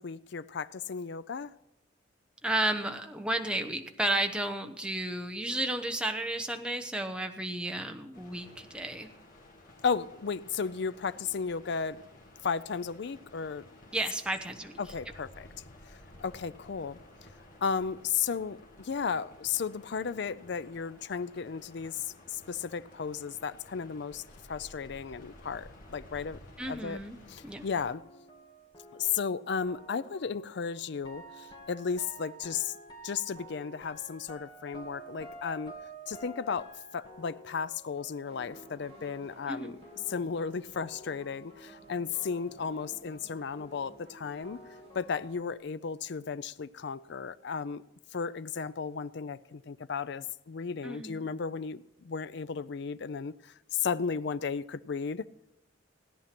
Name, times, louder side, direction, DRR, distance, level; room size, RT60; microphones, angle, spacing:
voice 1, 0.0-1.5 9.8-12.0 12.4-13.6 14.8-15.5 16.2-17.0 17.6-24.2 24.5-26.4 26.7-27.0 27.3-28.0 28.9-32.7 33.0-35.7 36.1-36.7 36.9-39.8 40.1-44.6 44.9-47.8 48.1-55.3, left 6 dB, 55° left, 0.5 m, -34 dB
voice 2, 2.4-9.1 13.9-14.7 26.6-27.2 27.4-27.6 39.5-39.7 50.8-51.3, right 1 dB, 5° right, 0.9 m, -32 dB
sound 1, 8.1-27.9, left 1 dB, 40° left, 2.4 m, -54 dB
sound 2, 27.8-40.5 40.7-45.6, right 1 dB, 20° left, 2.3 m, -51 dB
sound 3, 38.2-45.3, right 1 dB, 30° right, 4.1 m, -55 dB
17.0 x 10.0 x 5.9 m
head